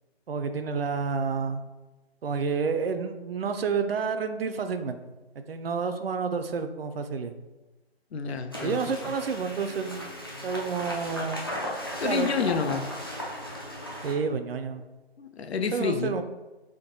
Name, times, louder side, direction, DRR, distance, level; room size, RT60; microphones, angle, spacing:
voice 1, 0.3-1.6 2.2-5.0 5.5-7.3 8.6-10.2 10.4-11.5 12.0-12.5 14.0-14.8 15.7-16.2, right 5 dB, 65° right, 8 dB, 0.5 m, -29 dB
voice 2, 8.1-9.1 12.0-12.9 15.2-16.1, left 6 dB, 85° left, 7 dB, 0.5 m, -29 dB
sound 1, 8.5-14.1, equal, 25° left, 0.3 m, -36 dB
3.6 x 2.6 x 3.8 m, 1.1 s
figure-of-eight pair, 155°, 32 cm